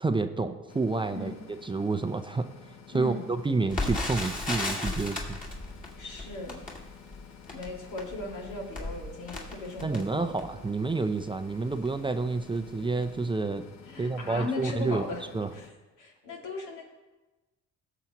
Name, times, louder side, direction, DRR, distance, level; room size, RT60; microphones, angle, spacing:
voice 1, 0.0-1.3 1.6-2.5 2.9-5.4 9.8-13.6 14.0-15.0 15.3-15.5, right 3 dB, 15° right, 8 dB, 0.5 m, -29 dB
sound 1, 0.7-15.7, left 8 dB, 60° left, 0.8 m, -51 dB
voice 2, 2.9-3.3 6.0-6.6 7.5-10.3 13.9-15.2 15.5-15.7 16.0-16.8, left 2 dB, 80° left, -1 dB, 2.3 m, -37 dB
Crackle, 3.7-10.7 11.3-11.4 11.7-11.9 12.5-12.8 13.0-13.1, left 2 dB, 25° left, 2.3 m, -35 dB
17.0 x 7.0 x 2.9 m, 1.2 s
cardioid pair, 90°, 30 cm